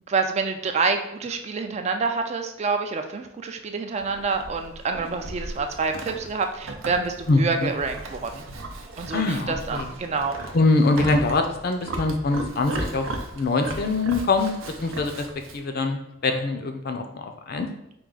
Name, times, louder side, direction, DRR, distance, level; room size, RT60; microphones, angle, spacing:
voice 1, 0.1-8.4 9.0-10.4, right 4 dB, 35° right, 5 dB, 0.3 m, -27 dB
Livestock farm animals working animals, 4.0-15.6, right 2 dB, 85° right, 0.6 m, -36 dB
voice 2, 7.3-7.7 9.1-9.9 10.5-13.1 13.4-14.5 14.8-15.3 15.5-17.7, left 3 dB, 50° left, 5 dB, 0.5 m, -23 dB
4.6 x 2.4 x 3.8 m, 0.78 s
head